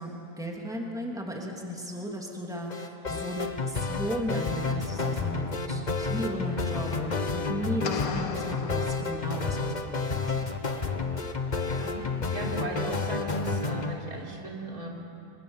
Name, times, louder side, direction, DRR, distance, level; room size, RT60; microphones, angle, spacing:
voice 1, 0.0-10.3, equal, ahead, -1 dB, 3.0 m, -35 dB
sound 1, 2.7-14.0, left 4 dB, 30° left, 1.4 m, -30 dB
sound 2, 7.8-9.8, left 6 dB, 75° left, 1.5 m, -37 dB
voice 2, 11.6-14.9, right 2 dB, 85° right, -2 dB, 4.4 m, -37 dB
26.0 x 25.5 x 7.4 m, 2.8 s
omnidirectional pair, 1.5 m